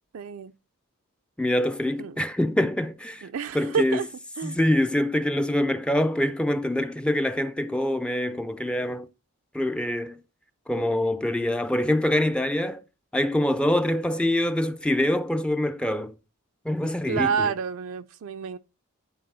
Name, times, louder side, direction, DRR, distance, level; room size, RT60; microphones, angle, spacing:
voice 1, 0.1-0.5 2.0-2.2 3.2-4.1 4.4-4.6 17.1-18.6, right 6 dB, 70° right, 0.4 m, -29 dB
voice 2, 1.4-3.3 3.5-4.0 4.4-9.1 9.5-10.2 10.7-12.8 13.1-16.1 16.7-17.5, left 1 dB, 5° left, 0.4 m, -25 dB
10.5 x 3.8 x 4.0 m
head